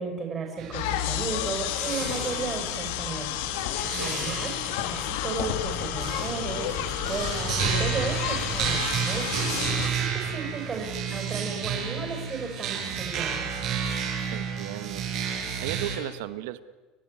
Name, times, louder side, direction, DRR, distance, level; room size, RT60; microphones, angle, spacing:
voice 1, 0.0-3.3 4.0-9.3 9.8-13.5, right 4 dB, 30° right, 3 dB, 5.9 m, -34 dB
sound 1, 0.6-16.0, right 7 dB, 60° right, 6.6 m, -32 dB
sound 2, 0.7-9.9, left 11 dB, 80° left, 1.7 m, -31 dB
voice 2, 3.9-4.2 14.3-15.1 15.6-16.6, right 14 dB, 85° right, 14 dB, 1.0 m, -35 dB
30.0 x 12.0 x 9.8 m, 1.4 s
supercardioid pair, 115°, 0 cm